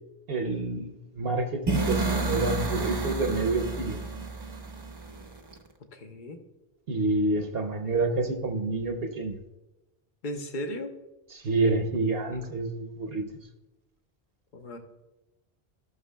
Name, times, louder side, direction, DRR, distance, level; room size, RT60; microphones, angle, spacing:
voice 1, 0.3-4.0 6.9-9.4 11.3-13.2, right 2 dB, 70° right, 5 dB, 0.9 m, -28 dB
sound 1, 1.7-5.6, right 3 dB, 25° right, 0.7 m, -30 dB
voice 2, 5.9-6.4 10.2-10.9 14.5-14.8, equal, 55° left, 6 dB, 1.0 m, -36 dB
15.0 x 6.2 x 2.2 m, 1.0 s
omnidirectional pair, 1.1 m